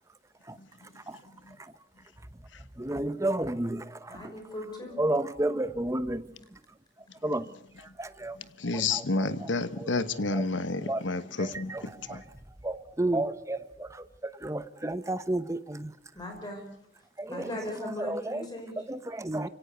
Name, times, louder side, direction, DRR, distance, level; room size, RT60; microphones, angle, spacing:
voice 1, 2.8-4.3 5.0-6.6 7.2-7.5 7.8-8.4 8.7-9.5 9.8-9.9 10.3-10.4 10.8-11.0 11.4-12.2 12.6-15.9 17.2-17.5 17.8-18.5 18.9-19.5, right 1 dB, 15° right, 0.8 m, -32 dB
voice 2, 4.1-5.0 16.1-16.6 17.3-18.8, left 1 dB, 20° left, 5.9 m, -38 dB
voice 3, 8.4-12.2, left 3 dB, 90° left, 1.3 m, -30 dB
29.5 x 17.5 x 6.9 m
head